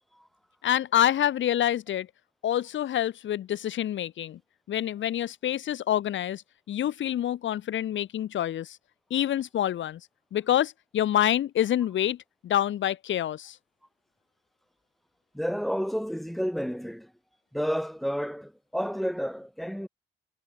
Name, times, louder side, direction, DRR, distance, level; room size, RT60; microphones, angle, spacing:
voice 1, 0.6-2.1 2.4-4.4 4.7-6.4 6.7-8.8 9.1-10.0 10.3-12.2 12.4-13.6, left 11 dB, 70° left, 6.4 m, -27 dB
voice 2, 15.3-17.1 17.5-19.9, equal, ahead, 6.8 m, -31 dB
cardioid pair, 90°, 20 cm